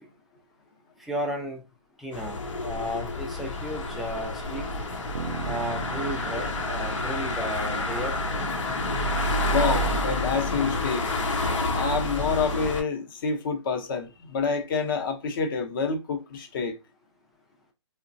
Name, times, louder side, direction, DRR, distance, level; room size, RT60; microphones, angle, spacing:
voice 1, 1.0-1.6 2.0-4.7 5.4-8.2, equal, ahead, 0.3 m, -33 dB
sound 1, 2.1-12.8, left 2 dB, 85° left, 0.9 m, -29 dB
Bass guitar, 5.1-9.6, right 4 dB, 75° right, 0.6 m, -39 dB
voice 2, 9.5-11.0 11.7-16.7, left 5 dB, 45° left, 0.7 m, -28 dB
3.0 x 2.2 x 2.5 m
hypercardioid pair, 150°, 16 cm